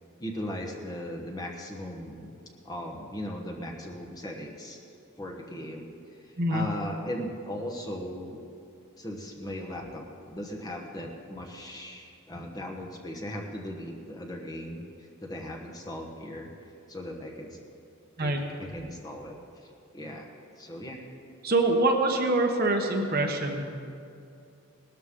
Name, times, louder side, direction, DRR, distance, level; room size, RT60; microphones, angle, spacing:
voice 1, 0.2-2.3 2.6-4.8 5.2-5.9 6.5-8.4 9.0-14.8 15.2-16.5 16.9-17.6 18.2-19.4 19.6-20.3 20.6-21.0, left 1 dB, 15° left, 0 dB, 1.1 m, -38 dB
voice 2, 21.4-23.8, right 2 dB, 40° right, 3 dB, 1.1 m, -25 dB
18.5 x 13.0 x 3.7 m, 2.5 s
head